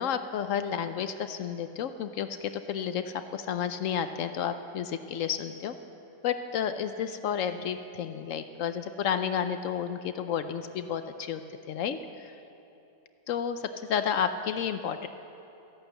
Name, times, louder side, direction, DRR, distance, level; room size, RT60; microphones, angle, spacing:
voice 1, 0.0-5.7 6.2-11.4 11.7-12.4 13.3-13.6 13.9-15.1, left 8 dB, 75° left, 9 dB, 0.7 m, -31 dB
14.0 x 11.5 x 8.0 m, 2.9 s
omnidirectional pair, 2.0 m